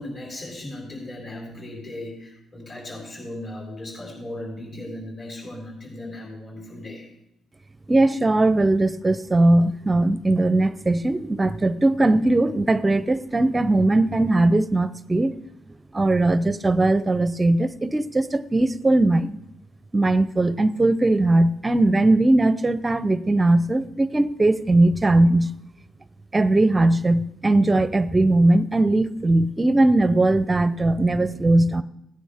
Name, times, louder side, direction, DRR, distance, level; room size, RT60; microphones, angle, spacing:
voice 1, 0.0-7.1, left 1 dB, 40° left, 3.9 m, -37 dB
voice 2, 7.9-15.3 15.9-19.4 19.9-25.5 26.3-31.8, right 2 dB, 20° right, 0.6 m, -19 dB
17.0 x 9.9 x 3.5 m
cardioid pair, 90°, 0 cm